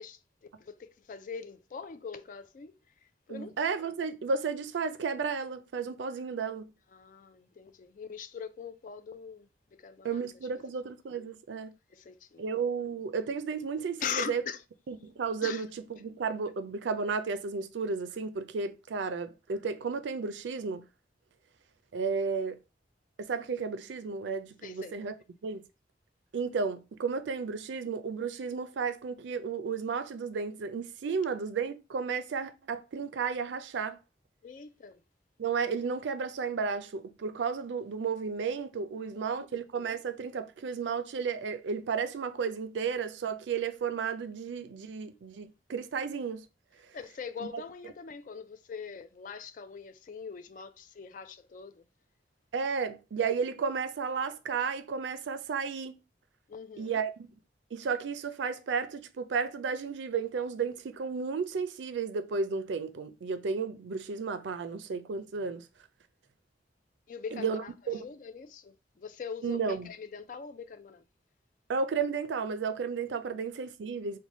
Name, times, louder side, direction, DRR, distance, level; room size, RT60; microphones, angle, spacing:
voice 1, 0.0-3.6 6.9-10.2 11.9-12.5 14.0-14.6 15.4-15.7 24.6-25.0 34.4-35.0 38.9-39.5 46.9-51.8 56.5-57.0 67.1-71.0 73.3-73.4, left 6 dB, 45° left, 0.3 m, -42 dB
voice 2, 3.3-6.7 10.0-11.7 12.4-14.4 14.9-20.8 21.9-22.6 23.2-25.1 25.4-25.6 26.3-34.0 35.4-46.5 52.5-56.0 56.8-57.3 57.7-65.7 67.3-68.0 69.4-69.9 71.7-74.2, right 5 dB, 90° right, 0.4 m, -33 dB
3.1 x 2.2 x 4.1 m
head